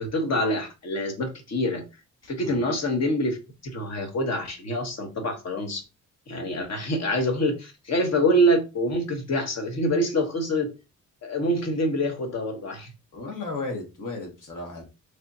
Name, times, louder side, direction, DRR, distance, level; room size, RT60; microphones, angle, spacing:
voice 1, 0.0-1.8 2.2-3.4 3.6-5.8 6.3-10.7 11.2-12.9, equal, 55° left, 4 dB, 1.2 m, -25 dB
voice 2, 13.1-14.8, left 3 dB, 70° left, 1 dB, 1.6 m, -34 dB
3.5 x 3.2 x 2.7 m, 0.28 s
cardioid pair, 110°, 32 cm